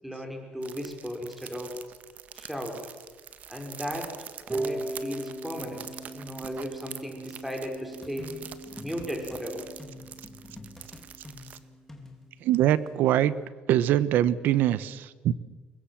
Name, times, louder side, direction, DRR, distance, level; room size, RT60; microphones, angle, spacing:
voice 1, 0.0-1.8 2.3-2.9 3.5-4.2 4.5-5.9 6.1-8.3 8.8-9.7, equal, 5° right, 3 dB, 5.3 m, -36 dB
sound 1, 0.6-11.6, right 8 dB, 55° right, 1.6 m, -45 dB
Harp, 4.5-10.6, right 2 dB, 20° right, 3.6 m, -38 dB
sound 2, 8.0-9.4 9.8-12.9, left 3 dB, 10° left, 3.3 m, -47 dB
voice 2, 12.4-13.3 13.7-15.3, right 12 dB, 80° right, 17 dB, 1.0 m, -23 dB
24.5 x 20.5 x 7.7 m, 1.4 s
cardioid pair, 115°, 3 cm